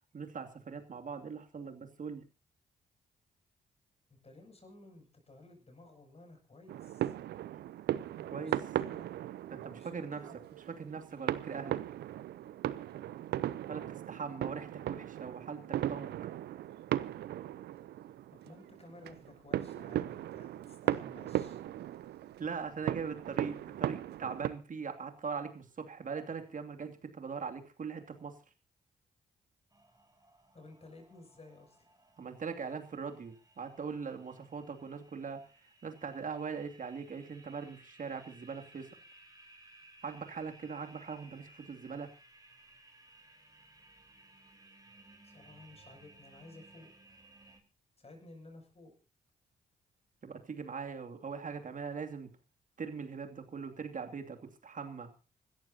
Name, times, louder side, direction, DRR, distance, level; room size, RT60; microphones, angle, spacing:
voice 1, 0.1-2.2 8.3-8.6 9.5-10.2 10.7-11.8 13.7-16.1 22.4-28.4 32.2-38.9 40.0-42.1 50.2-52.3 52.8-55.1, right 5 dB, 50° right, 5 dB, 2.7 m, -41 dB
voice 2, 4.1-7.1 8.2-9.1 9.7-10.4 18.4-21.6 30.5-31.9 45.2-46.9 48.0-48.9, left 2 dB, 35° left, 3 dB, 7.7 m, -55 dB
sound 1, 6.7-24.5, right 13 dB, 70° right, 0.7 m, -37 dB
sound 2, 29.7-47.6, right 2 dB, 20° right, 4.6 m, -60 dB
25.5 x 13.5 x 2.9 m, 0.33 s
hypercardioid pair, 40°, 18 cm